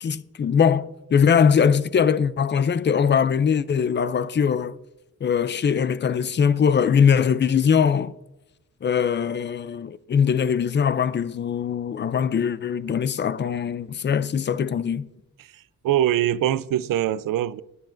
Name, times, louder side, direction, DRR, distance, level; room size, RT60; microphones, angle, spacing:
voice 1, 0.0-4.8 5.2-8.1 8.8-15.1, left 7 dB, 35° left, 0.4 m, -21 dB
voice 2, 15.5-17.6, right 12 dB, 75° right, 0.5 m, -23 dB
20.0 x 9.6 x 2.5 m
wide cardioid pair, 175°, 33 cm